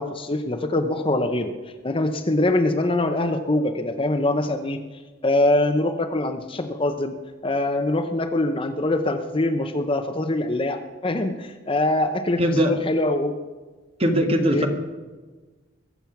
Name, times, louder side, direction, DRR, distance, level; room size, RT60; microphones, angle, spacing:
voice 1, 0.0-1.5 1.8-4.8 5.2-7.1 7.4-13.4 14.5-14.7, left 2 dB, 30° left, 7 dB, 0.8 m, -23 dB
voice 2, 12.4-12.8 14.0-14.7, equal, 30° right, 4 dB, 1.6 m, -20 dB
22.0 x 7.5 x 5.9 m, 1.3 s
head